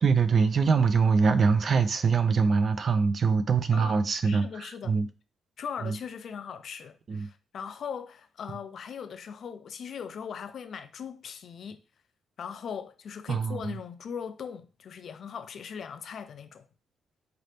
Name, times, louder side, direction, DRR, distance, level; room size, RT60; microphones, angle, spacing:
voice 1, 0.0-5.1 5.8-6.0 7.1-7.3 13.3-13.7, right 5 dB, 40° right, 0.4 m, -24 dB
voice 2, 3.7-5.0 5.6-11.8 12.4-16.7, left 7 dB, 50° left, 0.4 m, -39 dB
4.0 x 2.8 x 3.3 m
cardioid pair, 140°, 0 cm